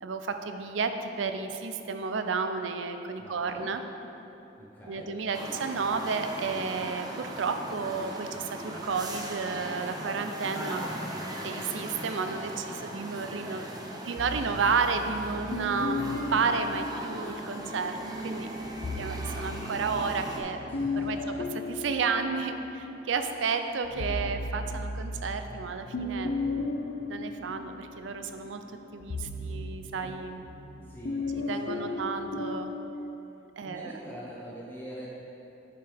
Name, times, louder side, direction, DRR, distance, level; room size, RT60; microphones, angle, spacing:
voice 1, 0.0-3.8 4.9-10.8 11.4-18.0 18.2-18.5 19.0-20.7 20.9-21.2 21.7-26.3 27.1-28.6 28.9-30.4 31.5-32.7 33.6-33.9, right 5 dB, 80° right, 7 dB, 0.5 m, -32 dB
voice 2, 3.2-3.7 4.6-5.1 10.5-11.3 20.7-21.4 30.9-31.4 31.6-32.0 33.6-35.1, equal, 10° left, -7 dB, 1.0 m, -42 dB
sound 1, 5.3-20.4, right 1 dB, 20° right, 0.8 m, -39 dB
sound 2, 14.2-17.7 18.6-23.1 23.5-32.8, left 2 dB, 60° left, 0.5 m, -35 dB
8.9 x 6.6 x 3.5 m, 3.0 s
head